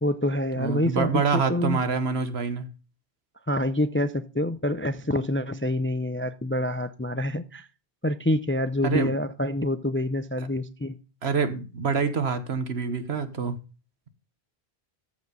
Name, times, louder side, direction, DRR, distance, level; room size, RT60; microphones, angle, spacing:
voice 1, 0.0-1.8 3.5-7.7 8.0-11.0, left 1 dB, 15° left, 0.4 m, -27 dB
voice 2, 0.6-2.7 8.8-9.1 11.2-13.5, right 5 dB, 75° right, 1.5 m, -26 dB
14.5 x 5.1 x 5.4 m
omnidirectional pair, 1.1 m